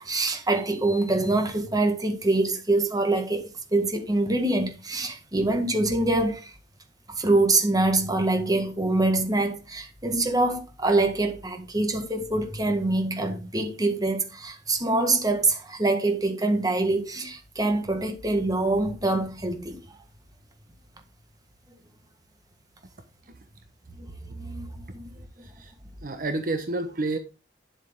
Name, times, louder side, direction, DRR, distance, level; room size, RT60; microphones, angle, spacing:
voice 1, 0.0-6.5 7.2-19.8 24.3-24.7 24.9-25.1, right 2 dB, 20° right, 1.7 m, -25 dB
voice 2, 25.4-25.7 26.0-27.2, right 2 dB, 55° right, 1.0 m, -29 dB
9.6 x 7.7 x 3.5 m
head